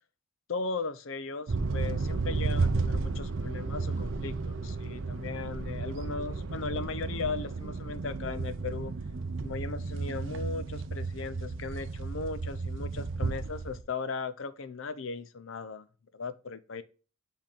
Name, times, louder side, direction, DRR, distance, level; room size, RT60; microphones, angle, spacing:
voice 1, 0.5-9.0 9.4-15.9 16.1-16.8, left 4 dB, 70° left, 0.6 m, -37 dB
sound 1, 1.5-13.8, right 3 dB, 65° right, 0.6 m, -33 dB
7.5 x 3.5 x 4.4 m
head